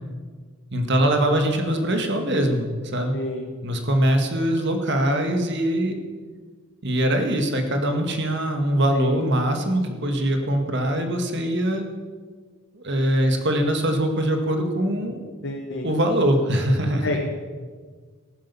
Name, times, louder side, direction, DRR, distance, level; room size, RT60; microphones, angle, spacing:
voice 1, 0.7-3.2 3.6-6.0 6.8-11.9 12.7-15.2 15.8-17.2, right 1 dB, 60° right, 5 dB, 2.0 m, -22 dB
voice 2, 15.4-15.9 17.0-17.2, left 2 dB, 60° left, 1 dB, 1.4 m, -28 dB
14.5 x 11.5 x 7.0 m, 1.5 s
head